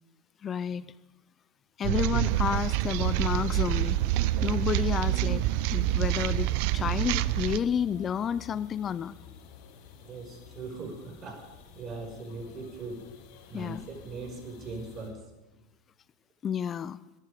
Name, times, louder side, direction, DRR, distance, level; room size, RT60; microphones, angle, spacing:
voice 1, 0.4-0.8 1.8-4.0 4.4-9.1 13.5-13.8 16.4-17.0, left 8 dB, 35° left, 17 dB, 0.5 m, -30 dB
sound 1, 1.8-7.6, right 15 dB, 60° right, 0.6 m, -27 dB
sound 2, 2.2-15.1, left 6 dB, 65° left, 5.9 m, -51 dB
voice 2, 10.0-11.4 11.7-13.0 13.5-15.2, right 3 dB, 35° right, 3 dB, 5.6 m, -40 dB
22.0 x 12.0 x 5.1 m, 1.1 s
hypercardioid pair, 90°, 0 cm